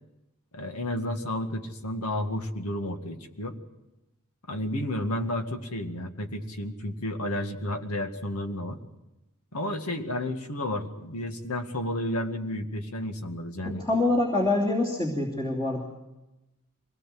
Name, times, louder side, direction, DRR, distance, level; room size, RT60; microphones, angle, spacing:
voice 1, 0.5-3.6 4.5-8.8 9.5-13.8, left 1 dB, 90° left, 6 dB, 2.1 m, -32 dB
voice 2, 13.6-15.8, left 2 dB, 20° left, -4 dB, 2.9 m, -25 dB
24.0 x 18.5 x 7.7 m, 0.97 s
head